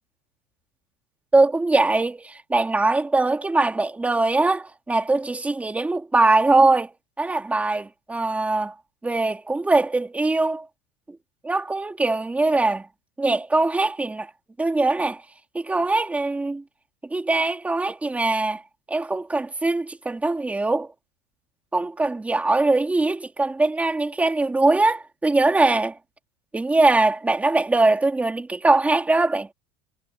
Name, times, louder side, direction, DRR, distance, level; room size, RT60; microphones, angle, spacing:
voice 1, 1.3-6.9 7.2-8.7 9.0-10.7 11.4-12.9 13.2-14.3 14.6-15.2 15.5-16.6 17.1-18.6 18.9-20.9 21.7-26.0 26.5-29.5, right 2 dB, 10° right, 2.6 m, -21 dB
cardioid pair, 160°, 18 cm